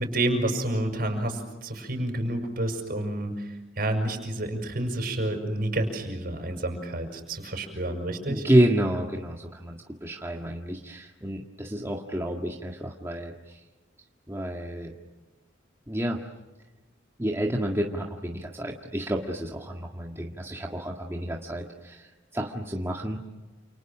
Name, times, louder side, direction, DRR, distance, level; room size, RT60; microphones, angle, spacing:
voice 1, 0.0-8.4, right 1 dB, 50° right, 5 dB, 6.7 m, -29 dB
voice 2, 8.3-13.6 14.3-14.9 15.9-16.2 17.2-23.2, right 1 dB, 15° right, 0 dB, 1.8 m, -29 dB
29.5 x 29.0 x 6.2 m, 1.2 s
head